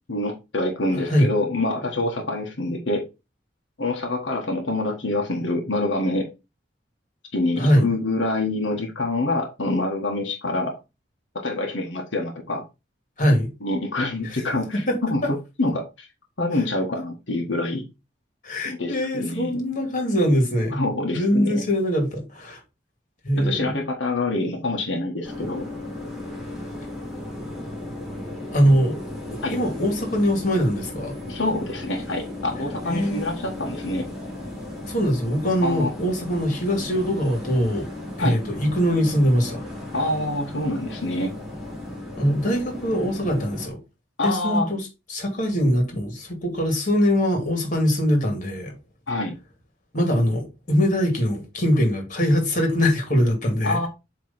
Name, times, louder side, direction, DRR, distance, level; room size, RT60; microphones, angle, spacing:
voice 1, 0.1-3.0 3.8-6.3 7.3-10.7 11.4-12.6 13.6-15.2 15.6-16.1 16.4-17.8 18.6-19.5 20.7-21.6 23.4-25.7 29.4-29.5 31.3-34.1 35.6-35.9 38.2-38.4 39.9-41.3 44.2-44.7 49.1-49.3 53.6-53.9, left 2 dB, 90° left, 1.4 m, -26 dB
voice 2, 0.9-1.3 7.6-7.9 13.2-13.5 14.2-14.4 14.7-15.3 16.5-16.6 18.4-20.8 21.1-22.6 23.2-23.8 28.5-29.0 29.5-31.1 32.9-33.3 34.9-37.9 38.2-39.6 42.2-43.8 44.2-48.7 49.9-53.9, equal, 45° left, 2.4 m, -22 dB
sound 1, 25.2-43.7, left 1 dB, 5° right, 2.8 m, -35 dB
7.7 x 3.3 x 4.2 m
head